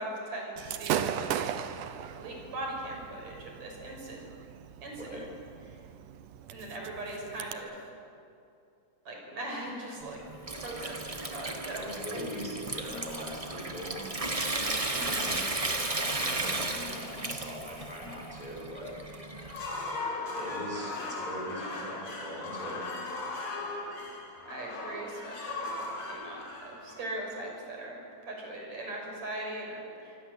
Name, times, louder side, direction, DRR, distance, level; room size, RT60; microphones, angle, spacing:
voice 1, 0.0-1.9 2.1-4.2 4.8-5.2 5.7-5.8 6.5-7.8 9.1-12.2 14.9-15.3 24.4-25.7 26.1-30.2, right 1 dB, 55° right, 0 dB, 7.4 m, -40 dB
Gunshot gunfire / Fireworks, 0.6-7.5, right 10 dB, 75° right, 2.5 m, -37 dB
Water tap faucet / Sink (filling or washing) / Trickle dribble, 10.0-19.9, right 2 dB, 40° right, 0.5 m, -35 dB
voice 2, 11.8-14.0 14.9-15.4 15.9-18.9 20.3-22.8, equal, 10° left, -2 dB, 6.0 m, -41 dB
sound 1, 19.4-27.5, left 2 dB, 65° left, 5.4 m, -38 dB
26.0 x 24.5 x 8.2 m, 2.6 s
omnidirectional pair, 3.7 m